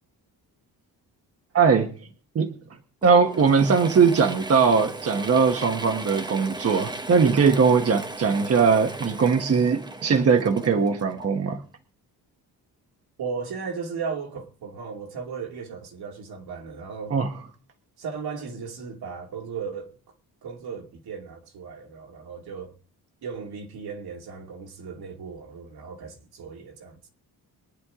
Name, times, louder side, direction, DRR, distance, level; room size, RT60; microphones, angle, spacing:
voice 1, 1.5-1.9 2.3-2.5 3.0-11.6 17.1-17.3, right 5 dB, 40° right, 1.3 m, -20 dB
Mechanisms / Drill, 3.0-11.6, right 2 dB, 10° right, 0.8 m, -37 dB
voice 2, 13.2-17.2 18.0-20.0 20.4-22.7 23.2-27.1, right 5 dB, 75° right, 2.6 m, -36 dB
23.0 x 10.0 x 3.7 m
wide cardioid pair, 160°, 39 cm